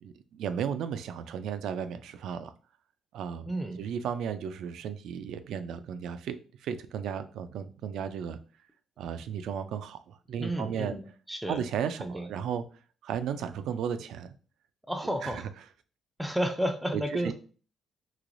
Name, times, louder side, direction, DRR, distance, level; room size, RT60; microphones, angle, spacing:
voice 1, 0.0-2.5 3.1-3.5 3.8-6.4 6.6-8.4 9.0-10.9 11.5-12.6 13.0-14.3 15.2-15.4 16.9-17.3, right 8 dB, 80° right, 11 dB, 0.3 m, -34 dB
voice 2, 3.5-3.8 10.4-11.6 12.0-12.3 14.9-15.5 16.2-17.3, right 1 dB, 5° right, 4 dB, 0.4 m, -32 dB
3.1 x 3.0 x 2.5 m, 0.39 s
cardioid pair, 90°, 0 cm